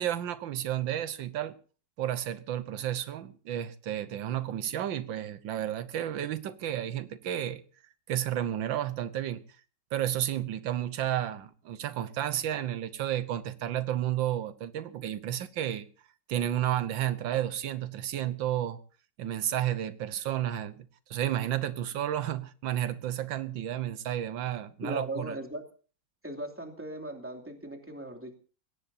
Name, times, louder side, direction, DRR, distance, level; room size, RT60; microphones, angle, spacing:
voice 1, 0.0-1.5 2.0-7.6 8.1-9.4 9.9-15.8 16.3-18.8 19.2-25.3, right 11 dB, 90° right, 1.7 m, -32 dB
voice 2, 24.8-25.7 26.2-28.3, right 1 dB, 5° right, 2.7 m, -38 dB
21.0 x 18.0 x 2.7 m
omnidirectional pair, 2.0 m